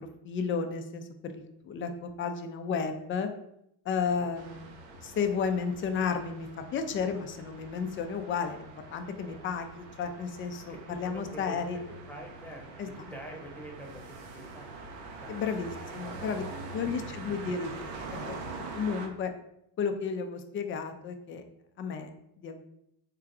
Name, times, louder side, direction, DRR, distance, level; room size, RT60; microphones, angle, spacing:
voice 1, 0.0-3.3 3.9-4.7 5.0-11.8 12.8-12.9 15.3-16.4 16.7-17.7 18.1-18.4 18.7-19.3 19.8-21.4 21.8-22.1 22.4-22.6, left 6 dB, 30° left, 7 dB, 0.3 m, -33 dB
sound 1, 4.3-19.1, right 3 dB, 80° right, 0.9 m, -44 dB
voice 2, 10.7-11.6 11.9-14.7 15.2-15.7 16.0-16.5 17.0-17.2, right 1 dB, 5° left, -1 dB, 0.9 m, -46 dB
3.8 x 2.3 x 4.6 m, 0.77 s
supercardioid pair, 100°, 49 cm